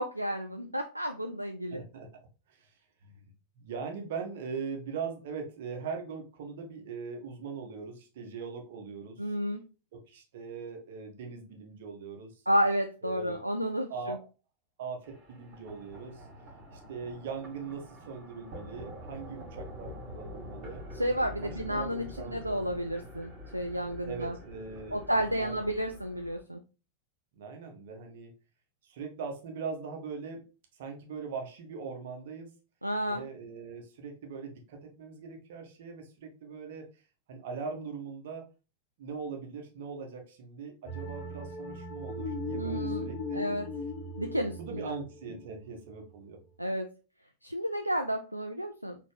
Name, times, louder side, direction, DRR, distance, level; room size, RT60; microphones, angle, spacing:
voice 1, 0.0-1.8 9.2-9.6 12.5-14.2 21.0-24.3 24.9-26.6 32.8-33.2 42.6-43.1 43.3-43.7 44.2-44.9 46.6-46.9 47.4-49.0, equal, 90° right, 5 dB, 0.3 m, -31 dB
voice 2, 1.7-2.1 2.5-2.7 3.0-3.1 3.6-9.2 9.9-12.3 13.0-13.4 13.9-14.2 14.8-16.2 16.7-20.8 21.4-22.9 24.1-25.6 27.4-28.3 28.8-30.5 30.8-32.5 33.1-36.9 37.3-38.5 39.0-43.4 44.6-46.4, right 5 dB, 55° right, 3 dB, 1.1 m, -41 dB
sound 1, 15.0-26.4, equal, 35° right, 2.3 m, -46 dB
sound 2, 40.9-46.1, left 2 dB, 40° left, 1.2 m, -38 dB
4.2 x 3.0 x 3.2 m, 0.32 s
figure-of-eight pair, 90°, 0 cm